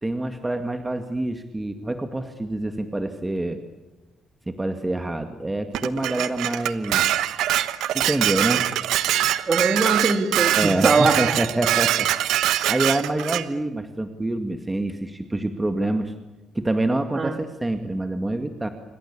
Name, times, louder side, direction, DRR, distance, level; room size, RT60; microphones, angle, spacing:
voice 1, 0.0-3.6 4.5-7.4 7.9-8.6 10.5-16.1 16.5-18.7, right 2 dB, 15° right, 7 dB, 2.0 m, -26 dB
Dishes pots and pans, 5.7-13.5, right 13 dB, 85° right, 1.2 m, -23 dB
voice 2, 9.5-11.4 17.2-17.3, right 3 dB, 35° right, 8 dB, 3.0 m, -21 dB
27.0 x 25.0 x 8.6 m, 1.1 s
cardioid pair, 90°, 0 cm